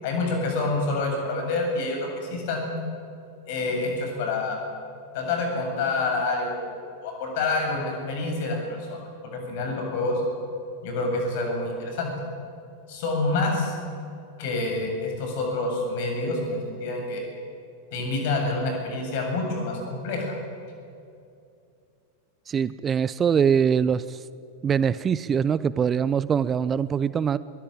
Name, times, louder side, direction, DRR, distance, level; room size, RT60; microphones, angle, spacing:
voice 1, 0.0-2.7 3.5-4.6 5.1-6.7 7.0-9.0 9.3-10.2 10.8-12.1 12.9-13.7 14.4-17.3 17.9-20.3, left 3 dB, 50° left, 2 dB, 7.6 m, -27 dB
voice 2, 22.5-24.2 24.6-27.4, right 7 dB, 20° right, 17 dB, 0.5 m, -23 dB
22.0 x 20.5 x 8.9 m, 2.5 s
figure-of-eight pair, 90°, 0 cm